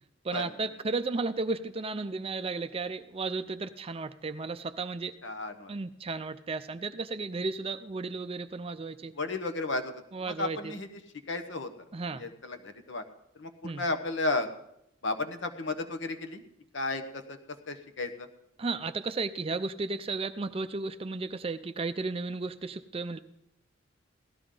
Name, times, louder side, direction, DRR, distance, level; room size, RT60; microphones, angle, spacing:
voice 1, 0.2-5.2 5.7-9.1 10.1-10.7 11.9-12.2 13.6-13.8 18.6-23.2, right 3 dB, 30° right, 11 dB, 0.4 m, -34 dB
voice 2, 5.2-5.7 9.1-10.9 11.3-11.7 12.1-13.0 13.4-14.5 15.0-16.4 16.7-18.3, left 2 dB, 60° left, 8 dB, 1.0 m, -34 dB
17.0 x 13.0 x 3.8 m, 0.81 s
head